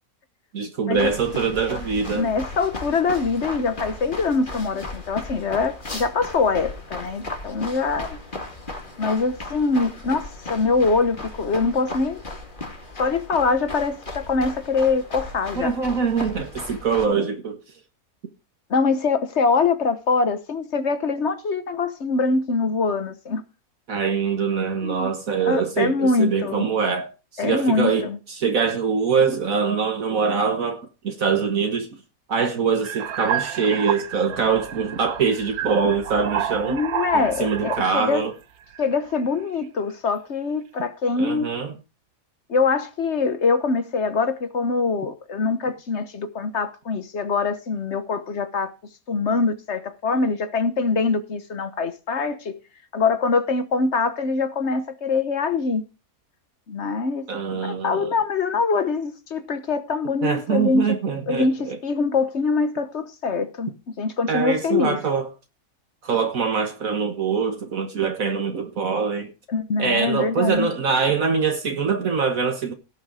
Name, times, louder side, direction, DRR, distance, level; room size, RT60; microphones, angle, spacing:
voice 1, 0.5-2.3 15.5-17.6 23.9-31.9 32.3-36.8 37.1-38.3 41.2-41.7 57.3-58.1 60.2-61.8 64.3-65.3 66.0-69.3 69.8-72.7, right 5 dB, 65° right, 1.7 m, -23 dB
sound 1, 0.9-17.1, left 2 dB, 35° left, 2.3 m, -36 dB
voice 2, 2.1-8.2 9.0-12.2 13.0-15.8 18.7-23.4 24.8-25.1 25.5-26.7 27.4-28.2 36.7-38.2 38.8-41.5 42.5-48.7 49.1-52.6 52.9-55.8 56.7-57.3 57.5-60.8 61.3-65.0 69.5-70.7, left 4 dB, 50° left, 1.3 m, -23 dB
sound 2, 32.8-38.1 38.7-39.1, right 9 dB, 80° right, 1.4 m, -30 dB
17.0 x 6.5 x 4.8 m
omnidirectional pair, 1.6 m